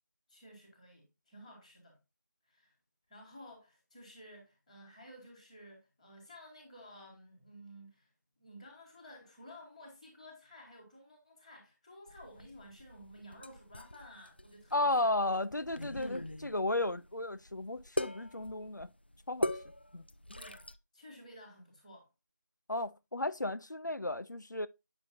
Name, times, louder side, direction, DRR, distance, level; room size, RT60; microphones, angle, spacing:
voice 1, 0.3-2.0 2.4-2.7 3.1-8.1 8.4-15.2 20.3-20.6 20.9-22.1, equal, 5° left, 1.2 m, -54 dB
sound 1, 12.1-20.8, left 1 dB, 35° left, 0.5 m, -41 dB
voice 2, 14.7-18.9 19.3-19.5 19.9-20.0 22.7-24.7, left 2 dB, 70° left, 0.7 m, -34 dB
8.8 x 6.2 x 2.7 m
figure-of-eight pair, 170°, 10 cm